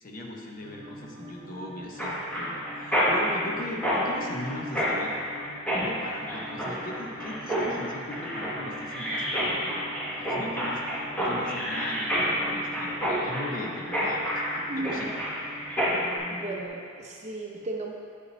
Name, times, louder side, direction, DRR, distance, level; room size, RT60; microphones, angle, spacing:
voice 1, 0.0-5.2 5.8-9.9 10.2-10.8 11.2-13.0 13.2-15.2, left 1 dB, 45° left, 0 dB, 0.7 m, -38 dB
sound 1, 0.6-16.7, equal, 75° right, 0.7 m, -44 dB
Mechanisms, 2.0-16.2, equal, 5° left, 1.0 m, -29 dB
voice 2, 14.7-15.0 16.3-17.9, right 2 dB, 35° right, 0 dB, 0.6 m, -35 dB
7.9 x 5.3 x 3.1 m, 2.3 s
head